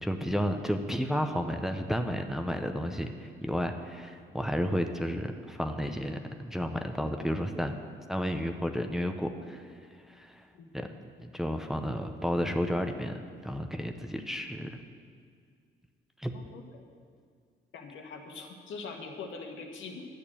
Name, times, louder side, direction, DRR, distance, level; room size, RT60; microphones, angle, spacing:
voice 1, 0.0-7.8 8.1-9.8 10.1-10.5 10.7-10.9 11.2-14.8 16.2-16.4, equal, ahead, 5 dB, 0.8 m, -32 dB
voice 2, 16.3-16.8 17.7-20.1, left 4 dB, 75° left, 2 dB, 1.7 m, -43 dB
11.0 x 6.6 x 8.9 m, 2.1 s
cardioid pair, 90°, 20 cm